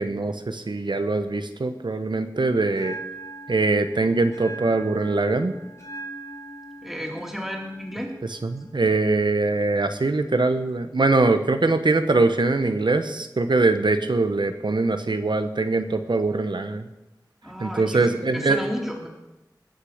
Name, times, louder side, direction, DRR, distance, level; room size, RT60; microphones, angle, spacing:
voice 1, 0.0-3.0 3.5-5.5 8.4-16.9 17.6-18.6, right 3 dB, 85° right, 9 dB, 1.0 m, -22 dB
Bell, 2.7-10.7, right 3 dB, 40° left, 3.6 m, -42 dB
voice 2, 6.8-8.1 17.4-19.1, equal, 5° right, 0 dB, 3.1 m, -33 dB
19.5 x 6.7 x 6.5 m, 1.0 s
wide cardioid pair, 50°, 8 cm